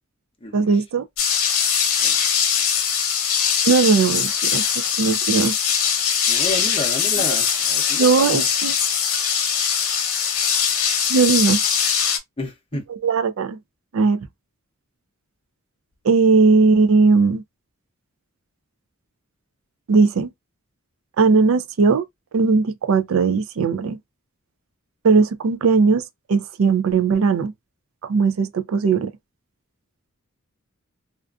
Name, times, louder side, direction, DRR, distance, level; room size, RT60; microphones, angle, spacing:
voice 1, 0.5-1.0 3.7-4.7 5.0-5.6 7.9-8.8 11.1-11.6 13.0-13.6 13.9-14.3 16.0-17.4 19.9-20.3 21.2-22.1 22.3-24.0 25.0-26.0 26.3-27.5 28.0-29.1, right 4 dB, 65° right, 0.4 m, -18 dB
sound 1, 1.2-12.2, left 7 dB, 75° left, 0.8 m, -21 dB
voice 2, 6.3-8.5 12.4-12.8, left 2 dB, 25° left, 0.6 m, -31 dB
2.4 x 2.4 x 2.3 m
head